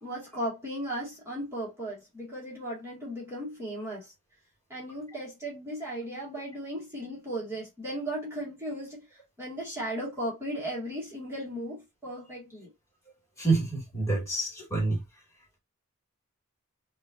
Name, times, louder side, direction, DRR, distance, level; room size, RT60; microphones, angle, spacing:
voice 1, 0.0-4.1 4.7-12.7, right 1 dB, 10° right, 1.9 m, -36 dB
voice 2, 13.4-15.0, right 3 dB, 15° left, 2.0 m, -27 dB
5.4 x 2.7 x 2.5 m
head